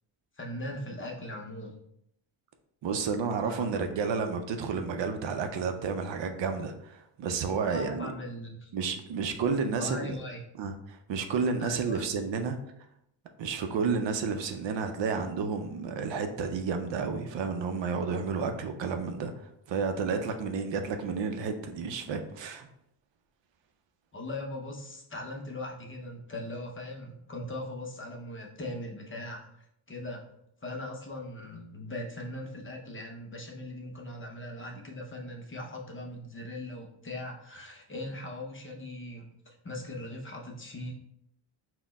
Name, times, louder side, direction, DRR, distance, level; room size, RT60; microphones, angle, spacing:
voice 1, 0.4-1.8 3.4-3.7 7.7-8.7 9.8-10.4 11.6-12.1 24.1-29.5 29.9-30.2 30.6-40.9, left 1 dB, 25° left, -1 dB, 0.6 m, -39 dB
voice 2, 2.8-8.1 8.7-10.2 10.6-12.6 13.4-22.7, right 5 dB, 65° right, 6 dB, 0.6 m, -31 dB
4.1 x 2.2 x 4.0 m, 0.76 s
wide cardioid pair, 145°, 49 cm